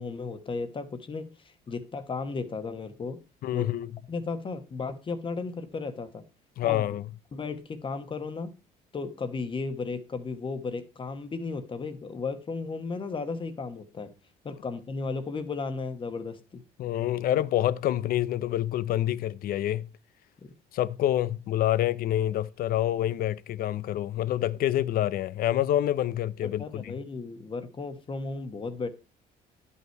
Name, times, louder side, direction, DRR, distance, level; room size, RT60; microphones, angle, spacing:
voice 1, 0.0-3.2 3.5-3.7 4.1-6.2 6.6-6.9 7.3-8.5 8.9-14.1 14.4-16.6 20.4-20.5 26.4-28.9, left 4 dB, 30° left, 1.2 m, -35 dB
voice 2, 3.4-3.9 6.6-7.0 16.8-19.9 20.7-26.9, left 12 dB, 60° left, 0.5 m, -27 dB
11.0 x 5.7 x 4.5 m
cardioid pair, 110°, 17 cm